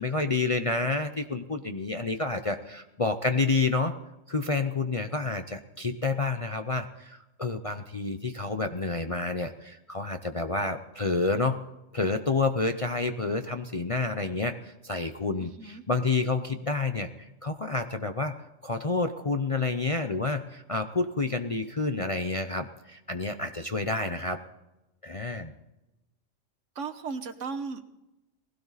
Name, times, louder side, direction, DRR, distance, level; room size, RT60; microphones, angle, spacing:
voice 1, 0.0-4.0 4.3-11.6 11.9-17.1 17.4-24.4 25.0-25.5, left 3 dB, 35° left, 6 dB, 0.6 m, -29 dB
voice 2, 15.4-15.8 26.7-27.9, right 5 dB, 65° right, 10 dB, 1.4 m, -36 dB
19.5 x 16.5 x 4.1 m, 0.96 s
omnidirectional pair, 1.4 m